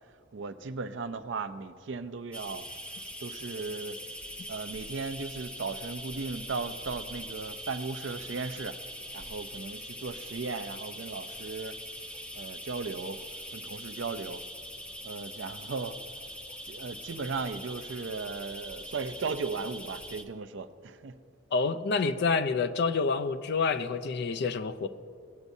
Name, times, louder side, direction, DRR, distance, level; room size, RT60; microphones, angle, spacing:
voice 1, 0.3-2.7 3.2-4.0 4.5-8.8 9.1-11.8 12.3-13.2 13.5-14.4 15.0-16.0 16.6-21.1, right 4 dB, 65° right, 0.5 m, -36 dB
sound 1, 2.3-20.2, equal, 5° left, 0.6 m, -42 dB
voice 2, 21.5-24.9, left 4 dB, 55° left, 0.4 m, -28 dB
17.0 x 8.2 x 2.7 m
head